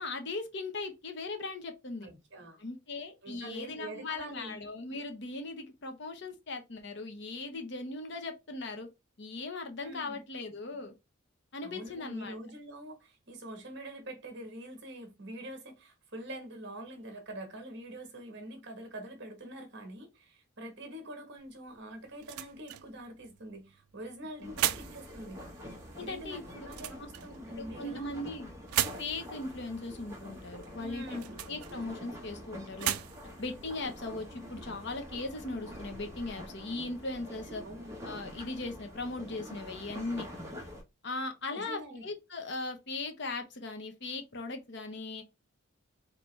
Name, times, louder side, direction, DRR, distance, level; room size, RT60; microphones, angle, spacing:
voice 1, 0.0-2.1 2.5-8.9 9.2-10.9 11.5-12.4 24.4-24.5 25.9-26.7 27.6-28.5 29.0-33.0 33.4-37.6 38.0-40.3 41.0-45.2, left 3 dB, 55° left, 0.9 m, -39 dB
voice 2, 2.0-2.6 3.2-4.6 9.8-10.2 11.6-25.4 26.0-28.6 30.8-31.4 37.6-37.9 41.5-42.1, right 1 dB, 55° right, 1.4 m, -45 dB
sound 1, 21.4-34.9, right 13 dB, 90° right, 0.4 m, -40 dB
sound 2, 24.4-40.8, equal, 15° right, 1.2 m, -46 dB
4.4 x 2.9 x 3.3 m
head